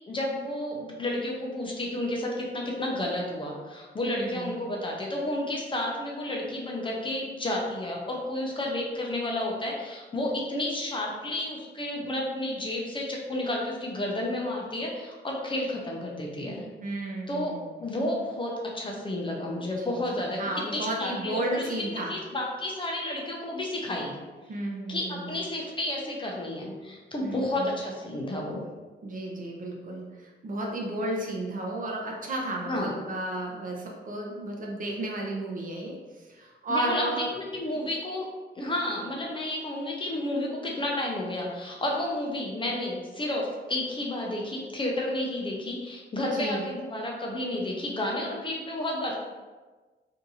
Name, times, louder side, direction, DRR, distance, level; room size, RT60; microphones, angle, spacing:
voice 1, 0.1-16.6 17.3-17.5 17.8-24.1 24.9-28.6 32.6-32.9 36.7-38.3 38.6-49.1, left 1 dB, 25° left, -2 dB, 0.5 m, -31 dB
voice 2, 4.0-4.6 16.8-17.8 19.9-22.1 24.5-25.3 27.2-27.6 29.0-37.3 37.7-37.9 46.3-46.6, right 1 dB, 45° right, -1 dB, 0.6 m, -33 dB
2.8 x 2.5 x 3.8 m, 1.3 s
wide cardioid pair, 165°, 20 cm